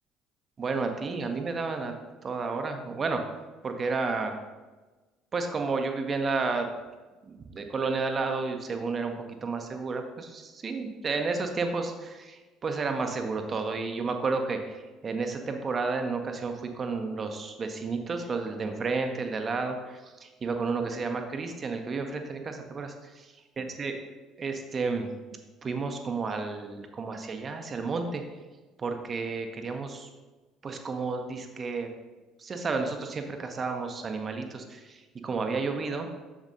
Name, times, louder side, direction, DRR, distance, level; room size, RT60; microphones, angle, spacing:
voice 1, 0.6-1.9 2.2-3.2 3.6-4.4 5.3-6.7 7.3-9.1 9.4-22.9 23.6-24.0 24.4-25.1 25.6-28.2 28.8-30.1 30.6-31.9 32.4-36.1, right 4 dB, 35° right, 5 dB, 0.8 m, -31 dB
7.3 x 7.1 x 2.7 m, 1.2 s
figure-of-eight pair, 55°, 0 cm